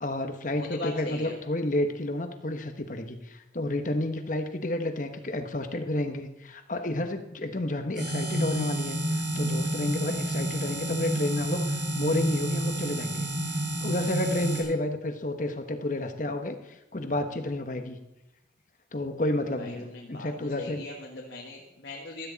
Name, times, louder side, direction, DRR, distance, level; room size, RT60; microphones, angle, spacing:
voice 1, 0.0-18.0 18.9-20.8, left 1 dB, 45° left, 7 dB, 1.1 m, -31 dB
voice 2, 0.6-1.3 19.6-20.3 20.6-22.3, left 2 dB, 75° left, -1 dB, 1.7 m, -39 dB
sound 1, 8.0-14.6, right 1 dB, 85° right, 5.6 m, -29 dB
15.5 x 13.0 x 4.1 m, 0.96 s
head